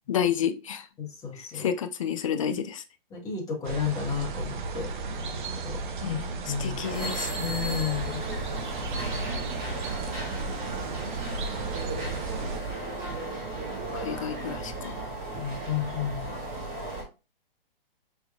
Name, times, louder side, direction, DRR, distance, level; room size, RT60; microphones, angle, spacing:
voice 1, 0.1-0.9 1.5-2.8 6.0-6.3 6.6-7.3 13.9-15.1, left 8 dB, 35° left, 0.4 m, -30 dB
voice 2, 1.0-1.7 3.1-4.9 5.6-6.2 6.5-6.8 7.4-8.3 15.3-16.3, left 7 dB, 10° left, 1.1 m, -32 dB
sound 1, 3.6-12.6, right 3 dB, 55° right, 0.8 m, -34 dB
sound 2, 6.8-17.0, right 2 dB, 30° right, 1.9 m, -35 dB
5.9 x 3.5 x 2.3 m
hypercardioid pair, 150°, 30 cm